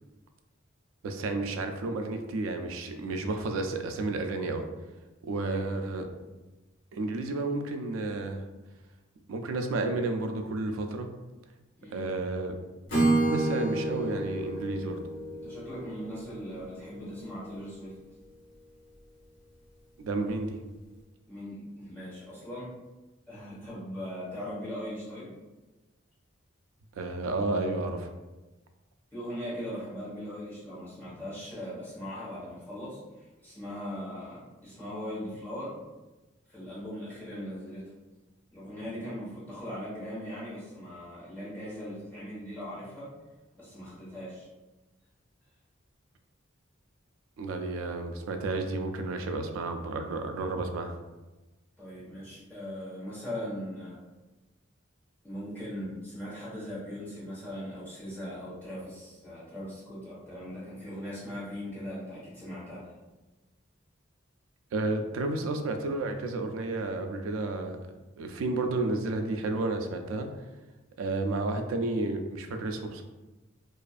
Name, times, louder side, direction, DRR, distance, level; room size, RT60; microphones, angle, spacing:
voice 1, 1.0-4.7 5.2-6.1 6.9-8.4 9.3-11.1 11.9-12.5 13.3-15.0 20.0-20.6 27.0-28.1 47.4-51.0 64.7-67.8 68.2-70.3 71.0-73.0, right 2 dB, 85° right, 6 dB, 0.3 m, -31 dB
voice 2, 5.4-5.9 11.8-12.0 15.4-17.9 21.3-22.7 23.3-25.3 29.1-35.8 36.5-37.9 38.5-43.1 43.5-44.5 51.8-54.0 55.2-62.9, equal, 10° left, -11 dB, 1.2 m, -39 dB
Acoustic guitar / Strum, 12.9-16.9, right 2 dB, 65° left, 0.8 m, -29 dB
2.4 x 2.4 x 2.4 m, 1.1 s
head